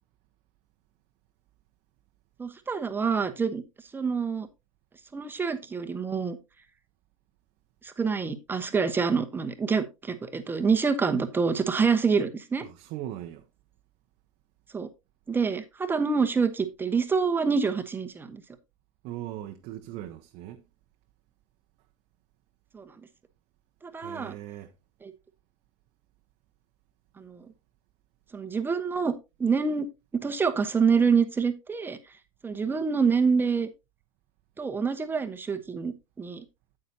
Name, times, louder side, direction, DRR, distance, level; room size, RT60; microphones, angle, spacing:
voice 1, 2.4-3.6 3.9-4.5 5.1-6.4 7.8-12.6 14.7-14.9 15.3-18.4 22.7-22.9 23.8-24.3 25.0-25.1 27.2-27.5 28.3-29.1 29.4-29.9 30.1-32.0 32.4-33.7 34.6-36.4, right 5 dB, 10° right, 1.0 m, -26 dB
voice 2, 12.6-13.4 19.0-20.6 23.9-24.7, right 13 dB, 40° right, 0.8 m, -39 dB
9.3 x 8.6 x 2.8 m
figure-of-eight pair, 90°, 17 cm